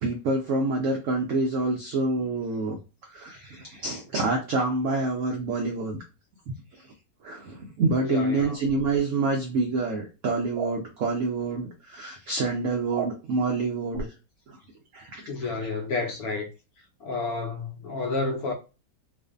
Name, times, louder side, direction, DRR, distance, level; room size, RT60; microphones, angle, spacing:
voice 1, 0.0-2.8 3.1-6.0 6.5-6.9 7.2-14.1 14.5-14.6 14.9-15.6, right 3 dB, 85° right, 0.6 m, -27 dB
voice 2, 8.0-8.6 15.3-16.5 17.0-18.5, left 3 dB, 70° left, 0.9 m, -30 dB
sound 1, 10.5-10.8 12.9-13.1 13.9-14.1, right 5 dB, 70° right, 1.0 m, -32 dB
2.5 x 2.5 x 2.3 m
omnidirectional pair, 1.9 m